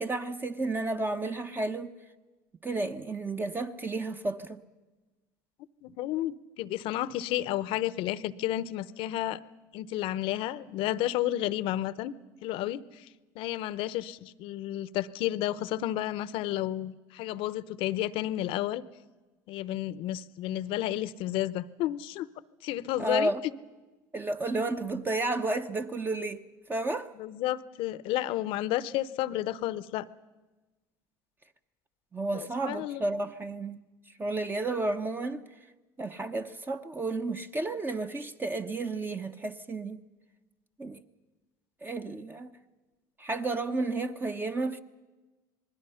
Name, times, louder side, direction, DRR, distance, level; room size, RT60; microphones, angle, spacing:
voice 1, 0.0-1.9 2.6-4.6 23.0-23.4 24.1-26.4 26.7-27.1 32.1-33.8 34.2-35.4 36.0-40.0 40.8-41.0 41.8-42.6 43.2-44.8, right 2 dB, 20° right, 0.9 m, -32 dB
voice 2, 5.8-9.4 9.7-12.1 12.4-13.1 13.4-18.8 19.5-22.3 22.6-23.3 27.2-30.1 32.3-33.0, left 14 dB, 65° left, 0.8 m, -31 dB
27.5 x 20.5 x 5.7 m
supercardioid pair, 90°, 10 cm